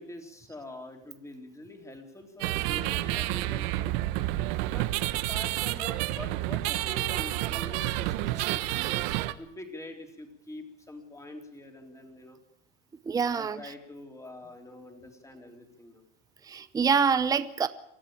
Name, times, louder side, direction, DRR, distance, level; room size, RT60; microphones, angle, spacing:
voice 1, 0.0-4.0 4.6-12.4 13.3-16.0, left 2 dB, 10° left, 3 dB, 3.5 m, -45 dB
sound 1, 2.4-9.3, right 17 dB, 55° right, 1.3 m, -29 dB
voice 2, 13.0-13.7 16.4-17.7, right 6 dB, 10° right, 12 dB, 0.8 m, -26 dB
24.5 x 14.0 x 8.9 m, 0.82 s
supercardioid pair, 140°, 38 cm